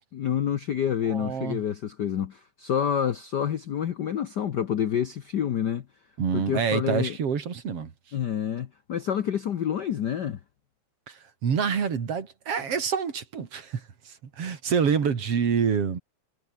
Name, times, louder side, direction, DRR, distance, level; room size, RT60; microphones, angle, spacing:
voice 1, 0.1-5.8 6.3-7.2 8.1-10.4, left 9 dB, 90° left, 0.9 m, -28 dB
voice 2, 1.1-1.6 6.2-7.9 11.1-16.0, right 6 dB, 55° right, 3.4 m, -27 dB
omnidirectional pair, 3.4 m